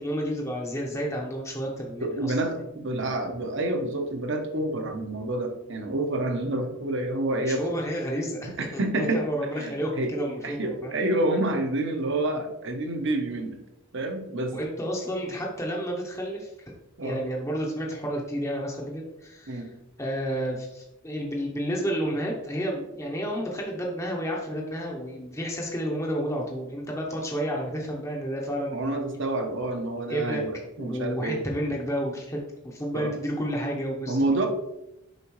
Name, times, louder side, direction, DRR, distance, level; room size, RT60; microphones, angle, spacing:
voice 1, 0.0-2.3 7.4-11.0 14.5-16.5 17.0-29.2 30.1-30.4 30.8-34.5, equal, 15° left, -1 dB, 0.7 m, -31 dB
voice 2, 2.0-7.7 8.5-9.3 9.6-10.1 10.4-13.6 13.9-14.5 17.0-17.2 19.5-19.7 28.7-31.4 32.9-33.1 34.1-34.5, right 2 dB, 55° right, 4 dB, 0.9 m, -28 dB
6.9 x 4.9 x 3.1 m, 0.87 s
head